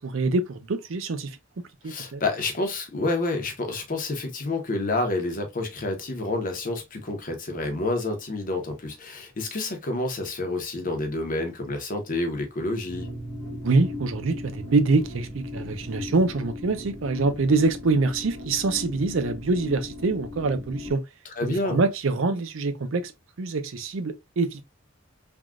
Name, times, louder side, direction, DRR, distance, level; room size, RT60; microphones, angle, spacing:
voice 1, 0.0-1.4 1.8-2.2 13.6-21.0 21.4-23.1 23.4-24.6, right 3 dB, 85° right, 0.5 m, -25 dB
voice 2, 1.8-13.1 21.4-21.8, left 2 dB, 45° left, 0.8 m, -29 dB
sound 1, 12.9-20.9, left 1 dB, 25° right, 1.3 m, -38 dB
3.5 x 2.3 x 2.3 m
head